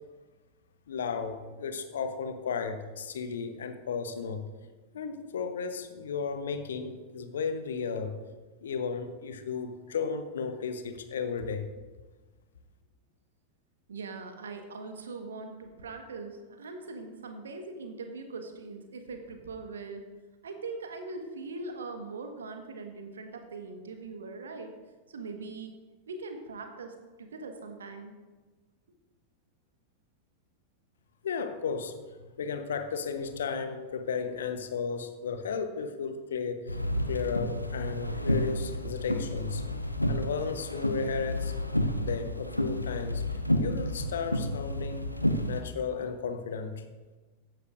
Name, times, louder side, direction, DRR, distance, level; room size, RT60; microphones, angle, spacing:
voice 1, 0.9-4.4 4.9-8.2 8.6-11.7 31.2-36.8 37.1-39.6 40.1-41.5 42.0-45.1 45.5-46.8, left 5 dB, 65° left, 10 dB, 0.9 m, -34 dB
voice 2, 13.9-20.1 20.4-24.8 25.1-25.7 26.1-28.1, right 3 dB, 70° right, 5 dB, 1.3 m, -41 dB
sound 1, 36.7-45.6, left 1 dB, 90° left, 0.7 m, -31 dB
15.0 x 9.7 x 2.5 m, 1.3 s
figure-of-eight pair, 90°, 0 cm